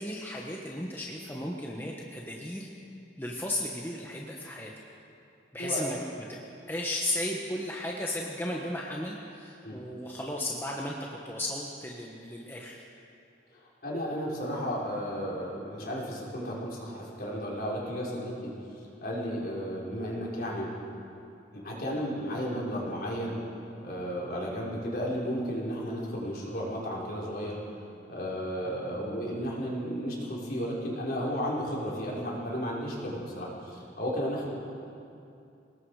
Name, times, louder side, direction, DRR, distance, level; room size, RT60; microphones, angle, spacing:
voice 1, 0.0-2.7 3.2-4.7 5.5-6.3 6.7-12.8, left 1 dB, 10° left, -2 dB, 1.2 m, -35 dB
voice 2, 5.6-5.9 9.6-9.8 13.5-20.7 21.5-23.3 23.8-27.8 28.1-34.5, equal, 50° left, -5 dB, 5.0 m, -33 dB
28.0 x 19.5 x 4.9 m, 2.7 s
head